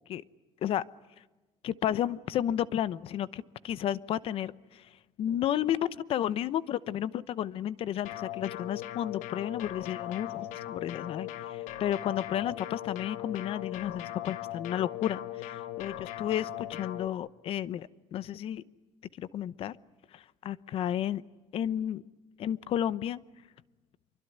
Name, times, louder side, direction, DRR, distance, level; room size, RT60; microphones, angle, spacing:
voice 1, 1.6-18.6 19.2-19.8 20.1-21.2 21.5-22.0 22.4-23.2, left 10 dB, 50° left, 18 dB, 0.9 m, -32 dB
sound 1, 8.0-17.1, left 13 dB, 85° left, 1.4 m, -39 dB
26.5 x 24.0 x 9.4 m, 1.1 s
cardioid pair, 170°, 12 cm